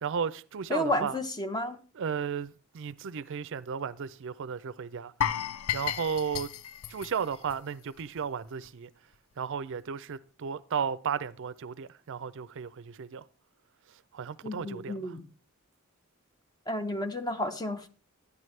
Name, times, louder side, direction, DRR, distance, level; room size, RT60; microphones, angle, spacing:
voice 1, 0.0-1.2 2.0-5.1 5.7-6.5 6.9-8.9 9.4-13.3 13.9-15.2, right 6 dB, 60° right, 0.5 m, -34 dB
voice 2, 0.7-1.8 14.4-15.2 16.7-17.9, left 1 dB, 20° left, 0.9 m, -31 dB
sound 1, 5.2-8.2 8.5-8.7 9.1-9.2, left 9 dB, 80° left, 0.5 m, -34 dB
12.5 x 9.6 x 3.2 m
head